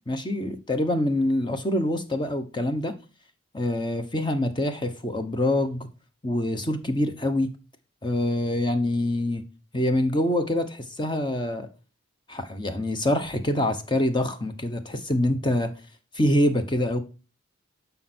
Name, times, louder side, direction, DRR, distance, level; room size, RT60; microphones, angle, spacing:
voice 1, 0.1-2.9 3.5-5.9 6.2-7.5 8.0-9.4 9.7-11.7 12.3-15.7 16.1-17.0, left 1 dB, 20° left, 1.1 m, -25 dB
12.0 x 5.5 x 4.4 m
head